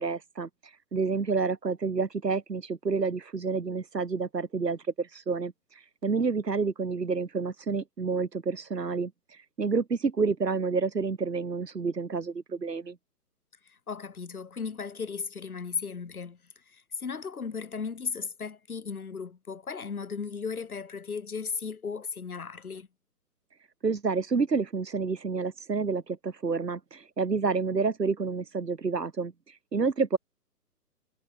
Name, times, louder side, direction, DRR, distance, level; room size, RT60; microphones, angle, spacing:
voice 1, 0.0-13.0 23.8-30.2, right 4 dB, 80° right, 1.4 m, -29 dB
voice 2, 13.7-16.4 16.7-22.9, left 5 dB, 60° left, 4.2 m, -36 dB
figure-of-eight pair, 135°, 49 cm